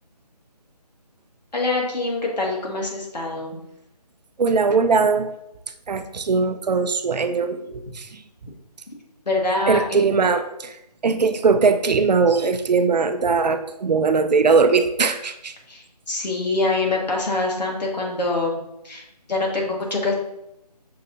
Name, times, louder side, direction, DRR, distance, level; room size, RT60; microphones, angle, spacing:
voice 1, 1.5-3.6 9.3-10.0 15.7-18.6 18.8-19.0 19.3-20.1, left 2 dB, 80° left, -1 dB, 1.5 m, -24 dB
voice 2, 4.4-5.3 5.9-8.1 9.7-10.7 11.0-15.5, right 4 dB, 80° right, 9 dB, 0.5 m, -20 dB
6.4 x 2.8 x 2.6 m, 0.85 s
figure-of-eight pair, 170°, 21 cm